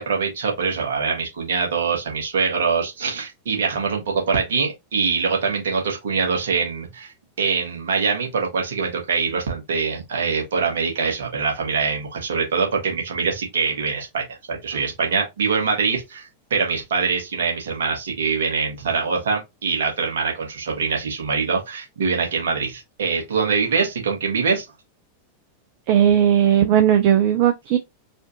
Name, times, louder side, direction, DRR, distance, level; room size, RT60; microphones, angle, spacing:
voice 1, 0.0-7.1 7.4-24.6, right 5 dB, 60° right, 1.7 m, -24 dB
voice 2, 25.9-27.8, right 9 dB, 45° right, 0.5 m, -17 dB
4.1 x 2.5 x 2.9 m
figure-of-eight pair, 90°, 0 cm